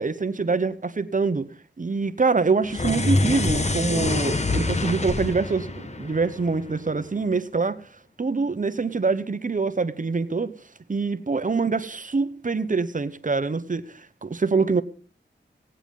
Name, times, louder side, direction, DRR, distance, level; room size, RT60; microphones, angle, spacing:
voice 1, 0.0-1.5 1.8-7.9 8.2-10.5 10.9-14.8, right 4 dB, 45° right, 0.9 m, -25 dB
sound 1, 2.6-7.0, left 2 dB, 35° left, 1.0 m, -26 dB
17.5 x 8.9 x 5.3 m
wide cardioid pair, 85°, 19 cm